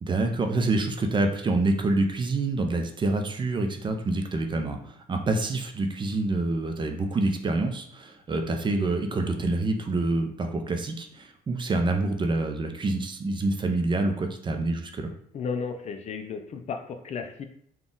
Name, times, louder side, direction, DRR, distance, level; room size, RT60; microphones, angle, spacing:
voice 1, 0.0-15.1, right 2 dB, 30° right, 5 dB, 0.5 m, -27 dB
voice 2, 15.3-17.5, left 5 dB, 40° left, 6 dB, 0.4 m, -33 dB
4.0 x 2.4 x 3.7 m, 0.65 s
cardioid pair, 110°, 17 cm